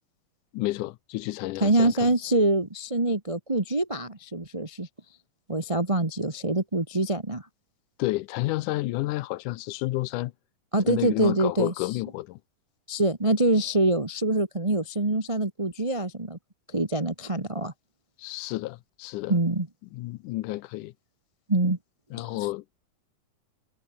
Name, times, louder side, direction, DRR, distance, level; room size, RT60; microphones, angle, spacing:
voice 1, 0.5-2.1 8.0-10.3 10.8-12.4 18.2-19.3 19.9-20.9 22.1-22.6, left 18 dB, 80° left, 2.2 m, -30 dB
voice 2, 1.6-4.9 5.5-7.5 10.7-12.0 12.9-16.4 16.7-17.7 19.3-19.7 21.5-21.8 22.2-22.5, right 2 dB, 20° right, 0.8 m, -25 dB
omnidirectional pair, 3.7 m